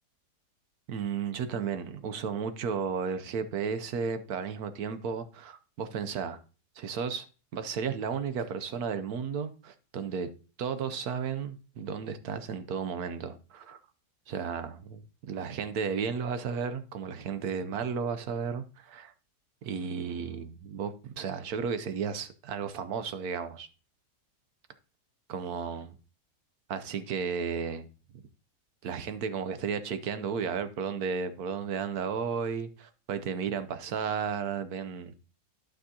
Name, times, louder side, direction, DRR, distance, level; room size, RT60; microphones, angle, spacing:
voice 1, 0.9-6.4 6.8-7.3 7.5-10.3 10.6-13.8 14.3-15.0 15.3-19.1 19.6-23.7 25.3-25.9 26.7-27.9 28.8-35.2, right 6 dB, 65° right, 1.2 m, -33 dB
12.0 x 6.3 x 2.8 m
omnidirectional pair, 1.8 m